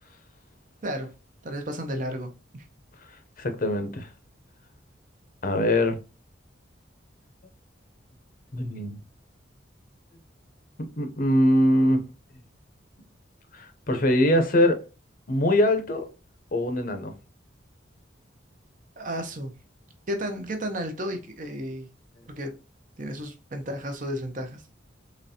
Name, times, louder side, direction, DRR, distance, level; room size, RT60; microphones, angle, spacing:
voice 1, 1.4-2.6 19.0-19.5 20.1-21.9 22.3-22.5 23.0-24.6, equal, 45° right, 0.7 m, -33 dB
voice 2, 3.4-4.1 5.4-6.0 8.5-9.0 11.0-12.0 13.5-14.8 15.3-16.1 16.5-17.1, left 1 dB, 45° left, 0.7 m, -22 dB
3.9 x 3.1 x 2.7 m
head